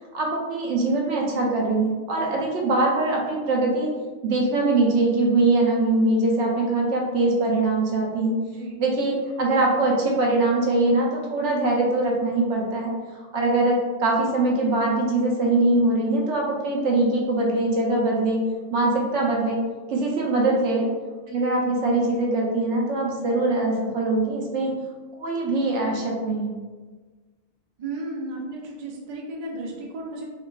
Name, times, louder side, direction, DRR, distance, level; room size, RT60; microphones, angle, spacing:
voice 1, 0.1-3.9 4.2-8.4 8.8-12.9 13.3-18.4 18.7-19.6 19.9-20.9 21.3-24.7 25.2-26.6, right 2 dB, 80° right, -2 dB, 1.0 m, -22 dB
voice 2, 27.8-30.2, right 2 dB, 45° right, -3 dB, 0.5 m, -34 dB
3.6 x 2.2 x 2.3 m, 1.4 s
omnidirectional pair, 1.2 m